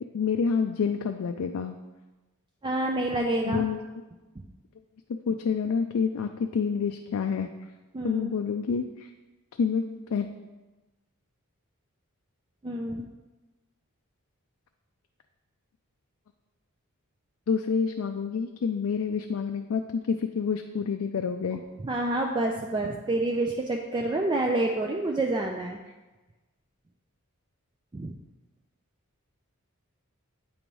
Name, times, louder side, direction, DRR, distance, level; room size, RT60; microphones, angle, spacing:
voice 1, 0.1-1.8 3.5-3.8 5.3-7.5 8.0-9.1 9.6-9.8 10.1-10.3 17.5-21.6, left 6 dB, 65° left, 5 dB, 0.4 m, -28 dB
voice 2, 2.6-3.7 7.9-8.4 12.6-13.1 21.8-25.8 27.9-28.1, right 2 dB, 20° right, 1 dB, 0.3 m, -28 dB
8.5 x 3.1 x 5.2 m, 1.1 s
head